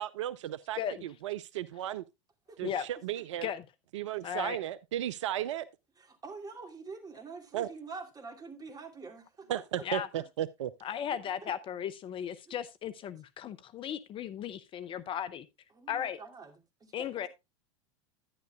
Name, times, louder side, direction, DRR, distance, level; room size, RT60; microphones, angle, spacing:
voice 1, 0.0-2.0 2.6-3.5 3.9-5.7 7.5-7.7 9.5-10.7, right 12 dB, 70° right, 0.5 m, -35 dB
voice 2, 4.2-4.6 9.8-10.1 10.8-15.5 15.9-16.2 16.9-17.3, left 9 dB, 35° left, 0.6 m, -36 dB
voice 3, 6.0-9.8 11.4-11.5 12.5-12.6 15.7-17.3, right 4 dB, 25° right, 2.7 m, -46 dB
11.0 x 10.5 x 2.4 m
hypercardioid pair, 90°, 16 cm